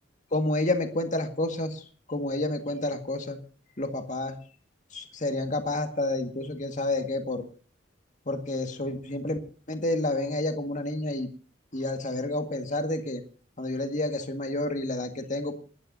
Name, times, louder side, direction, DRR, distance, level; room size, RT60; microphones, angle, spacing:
voice 1, 0.3-1.8 2.1-3.4 3.8-4.4 4.9-7.4 8.3-9.4 9.7-11.3 11.7-13.2 13.6-15.6, left 2 dB, 40° left, 6 dB, 1.9 m, -29 dB
28.0 x 12.5 x 2.8 m, 0.38 s
head